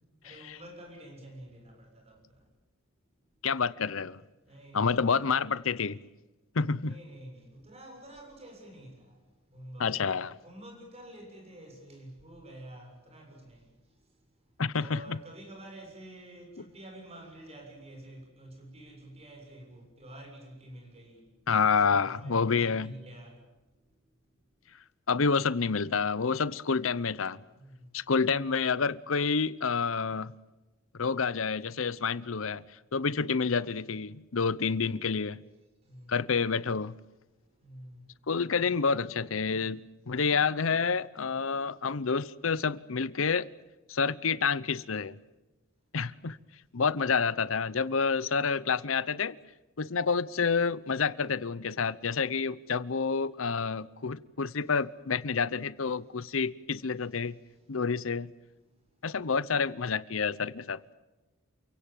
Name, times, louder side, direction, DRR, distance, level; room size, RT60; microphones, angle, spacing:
voice 1, 0.2-2.5 4.4-5.4 6.8-10.1 10.4-21.3 22.0-23.4 27.6-28.0 35.8-36.3 37.4-38.2 54.5-54.6 57.4-57.6 58.7-59.1, right 1 dB, 30° right, 6.9 m, -49 dB
voice 2, 3.4-4.2 4.7-6.0 6.5-7.0 9.8-10.4 14.6-15.2 21.5-22.9 25.1-27.4 27.9-30.3 31.0-32.6 32.9-35.4 36.1-36.9 38.3-43.5 43.9-45.2 45.9-46.4 46.7-49.4 49.8-57.4 57.7-58.3 59.0-60.8, left 5 dB, 80° left, 0.8 m, -28 dB
28.5 x 17.0 x 9.1 m
head